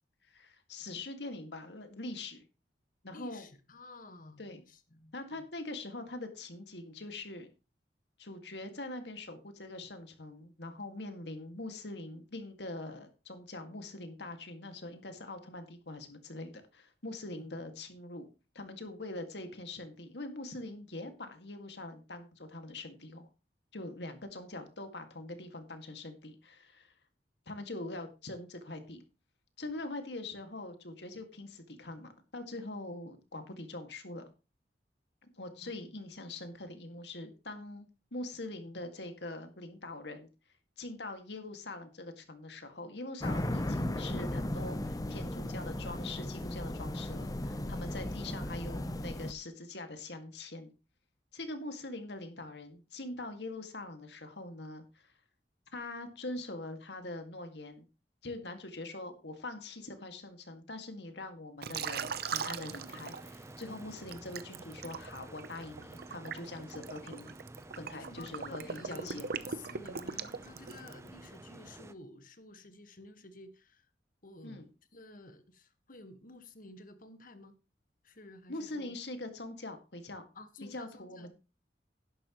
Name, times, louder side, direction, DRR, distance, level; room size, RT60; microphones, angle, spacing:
voice 1, 0.3-2.4 3.0-3.4 4.4-4.6 5.1-7.5 8.2-18.3 18.5-23.3 23.7-26.9 27.5-29.0 29.6-34.3 35.2-40.3 40.8-50.7 51.3-55.1 55.7-57.8 58.2-67.3 67.7-69.3 74.4-74.6 78.5-80.2 80.7-81.3, left 2 dB, 70° left, 2.1 m, -43 dB
voice 2, 3.1-5.5 17.3-17.5 35.6-35.9 67.9-73.9 74.2-77.5 78.0-78.9 80.3-81.3, left 2 dB, 50° left, 1.5 m, -52 dB
sound 1, 43.2-49.3, left 1 dB, 20° left, 0.8 m, -36 dB
Liquid, 61.6-63.6 64.1-71.1, right 6 dB, 60° right, 0.8 m, -39 dB
sound 2, 61.7-71.9, right 1 dB, 15° right, 0.7 m, -51 dB
11.0 x 11.0 x 3.1 m
head